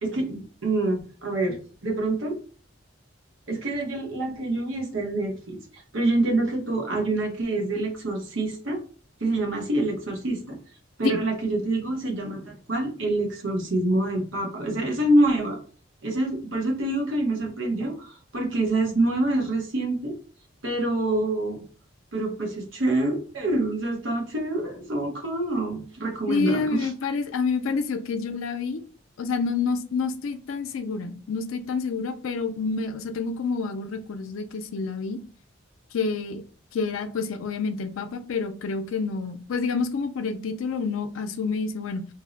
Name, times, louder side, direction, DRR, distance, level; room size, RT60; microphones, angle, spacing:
voice 1, 0.0-2.4 3.5-8.8 9.2-10.6 11.0-15.6 16.0-20.1 20.6-21.6 22.1-26.9, right 2 dB, 70° right, 2 dB, 0.8 m, -26 dB
voice 2, 26.3-28.8 29.2-35.2 35.9-36.4 36.7-42.1, left 4 dB, 85° left, 8 dB, 0.4 m, -28 dB
2.6 x 2.1 x 3.8 m, 0.40 s
head